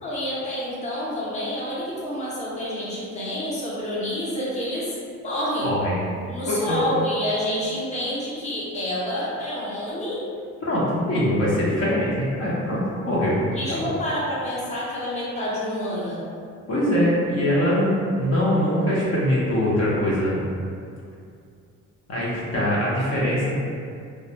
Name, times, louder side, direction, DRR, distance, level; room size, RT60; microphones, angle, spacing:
voice 1, 0.0-4.9 5.2-5.7 6.3-10.2 13.5-16.2, left 1 dB, 25° left, -7 dB, 0.7 m, -28 dB
voice 2, 5.6-6.0 6.5-6.8 10.6-13.4 13.7-13.8 16.7-20.4 22.1-23.5, equal, 55° left, -7 dB, 0.7 m, -22 dB
2.2 x 2.1 x 2.7 m, 2.4 s
cardioid pair, 90°, 30 cm